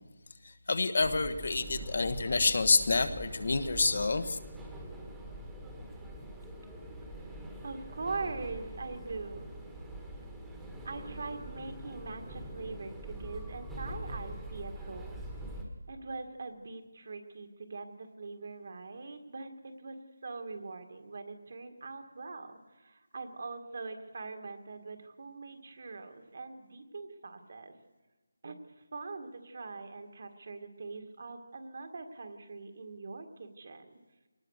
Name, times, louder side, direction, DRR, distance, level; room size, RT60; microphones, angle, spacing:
voice 1, 0.7-4.4, left 3 dB, 50° left, 10 dB, 1.3 m, -28 dB
sound 1, 1.0-15.6, right 1 dB, 5° right, 1.5 m, -44 dB
voice 2, 7.6-9.5 10.8-15.3 15.9-19.5 19.8-27.7 28.4-33.9, right 3 dB, 45° right, 6 dB, 2.0 m, -42 dB
23.5 x 19.0 x 6.6 m, 1.3 s
figure-of-eight pair, 175°, 0 cm